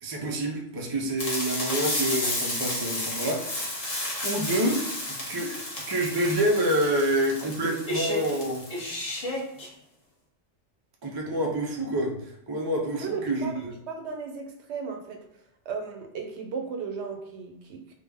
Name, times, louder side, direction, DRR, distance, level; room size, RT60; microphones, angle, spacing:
voice 1, 0.0-3.8 4.2-8.6 11.0-13.7, right 1 dB, 40° right, 0 dB, 0.3 m, -28 dB
sound 1, 1.2-9.7, left 1 dB, 35° left, 0.8 m, -32 dB
voice 2, 13.0-13.6 13.9-15.2 15.7-17.9, right 5 dB, 70° right, 3 dB, 0.8 m, -35 dB
3.3 x 2.2 x 3.4 m, 0.79 s
omnidirectional pair, 1.3 m